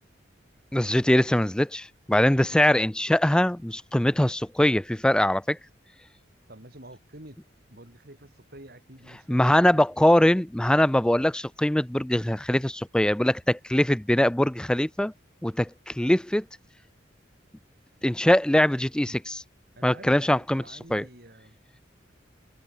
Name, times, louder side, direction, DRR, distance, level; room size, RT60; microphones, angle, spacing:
voice 1, 0.7-5.6 9.3-15.1 15.4-16.4 18.0-19.4 19.8-20.6 20.9-21.0, left 1 dB, 5° left, 0.3 m, -22 dB
voice 2, 6.5-7.4 7.7-9.8 19.7-21.6, right 1 dB, 55° right, 5.1 m, -48 dB
head